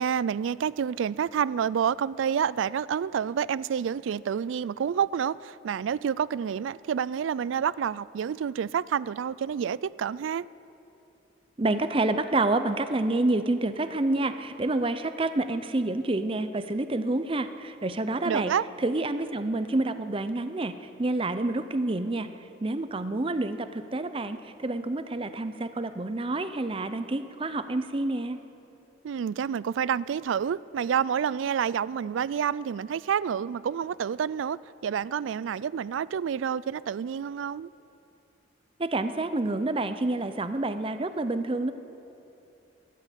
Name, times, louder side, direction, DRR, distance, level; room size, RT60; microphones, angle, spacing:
voice 1, 0.0-10.5 18.2-18.6 29.0-37.7, right 8 dB, 85° right, 20 dB, 0.3 m, -28 dB
voice 2, 11.6-18.5 18.8-22.3 22.6-28.4 38.8-41.7, right 2 dB, 30° right, 11 dB, 0.6 m, -28 dB
14.0 x 12.0 x 8.3 m, 2.8 s
head